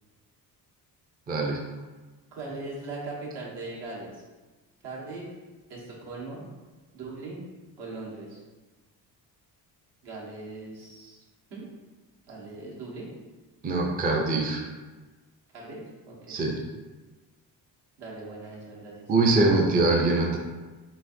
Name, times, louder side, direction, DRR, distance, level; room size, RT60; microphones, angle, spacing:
voice 1, 1.3-1.6 13.6-14.6 16.3-16.6 19.1-20.4, right 2 dB, 25° right, 0 dB, 0.5 m, -23 dB
voice 2, 2.3-4.2 4.8-5.3 5.7-6.5 6.9-7.4 7.8-8.4 10.0-11.2 11.5-11.6 12.3-13.1 15.5-16.4 18.0-19.1, right 3 dB, 75° right, -4 dB, 1.5 m, -39 dB
7.1 x 2.6 x 2.6 m, 1.3 s
cardioid pair, 150°, 40 cm